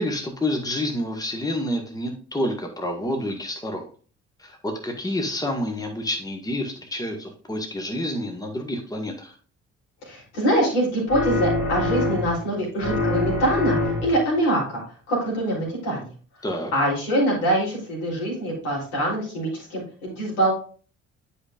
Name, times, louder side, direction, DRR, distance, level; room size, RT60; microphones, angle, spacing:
voice 1, 0.0-3.8 4.4-9.3 16.4-16.7, left 1 dB, 10° left, 3 dB, 1.6 m, -28 dB
voice 2, 10.0-14.8 15.1-16.1 16.7-20.5, right 1 dB, 70° left, -4 dB, 3.6 m, -24 dB
sound 1, 11.1-12.5 12.8-14.3, left 2 dB, 55° left, 3.2 m, -25 dB
10.5 x 5.2 x 2.5 m, 0.40 s
figure-of-eight pair, 45°, 36 cm